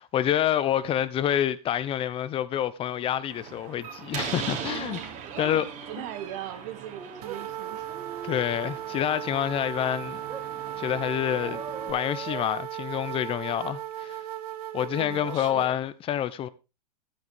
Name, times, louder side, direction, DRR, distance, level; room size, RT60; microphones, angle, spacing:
voice 1, 0.0-5.0 5.4-5.7 8.2-10.2 10.8-11.6 11.9-14.2 14.7-16.5, left 10 dB, 30° left, 0.9 m, -27 dB
Slam, 3.3-11.9, right 7 dB, 35° right, 3.1 m, -40 dB
voice 2, 4.6-7.9 8.5-8.6 14.9-15.8, right 11 dB, 55° right, 1.5 m, -40 dB
sound 1, 5.3-6.3 6.9-7.4 7.9-9.7 10.3-10.5 11.4-12.5 15.2-15.4 15.7-15.8, right 5 dB, 20° right, 1.9 m, -43 dB
sound 2, 7.2-15.7, right 11 dB, 70° right, 1.4 m, -37 dB
12.0 x 9.7 x 3.6 m
hypercardioid pair, 130°, 20 cm